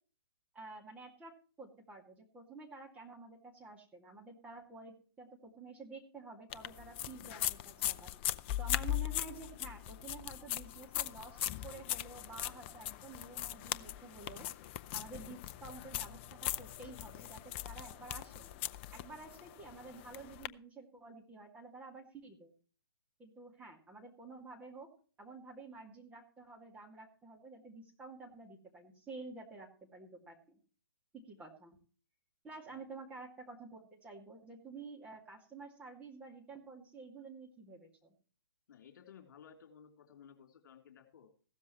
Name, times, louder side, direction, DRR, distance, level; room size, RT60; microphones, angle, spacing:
voice 1, 0.5-1.3 1.6-8.1 8.6-14.5 14.9-18.5 18.9-22.5 23.2-24.9 25.2-30.6 31.1-31.8 32.4-38.1, right 3 dB, 10° right, -1 dB, 2.3 m, -51 dB
sound 1, 6.5-20.5, left 13 dB, 25° left, 0.5 m, -40 dB
voice 2, 38.7-41.3, left 7 dB, 50° left, 4 dB, 3.5 m, -57 dB
16.0 x 13.0 x 3.1 m, 0.39 s
figure-of-eight pair, 130°, 13 cm